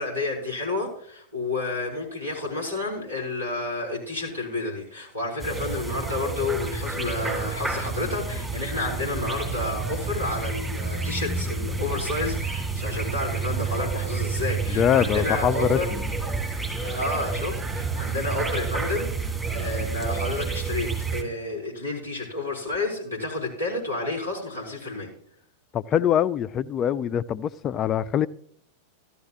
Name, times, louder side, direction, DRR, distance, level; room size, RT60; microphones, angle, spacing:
voice 1, 0.0-15.9 16.8-25.1, left 2 dB, 85° right, 4.8 m, -30 dB
sound 1, 5.4-21.2, right 4 dB, 10° right, 2.7 m, -29 dB
voice 2, 14.7-16.1 25.7-28.3, left 9 dB, 30° left, 0.4 m, -24 dB
14.5 x 12.5 x 3.1 m
figure-of-eight pair, 90°, 0 cm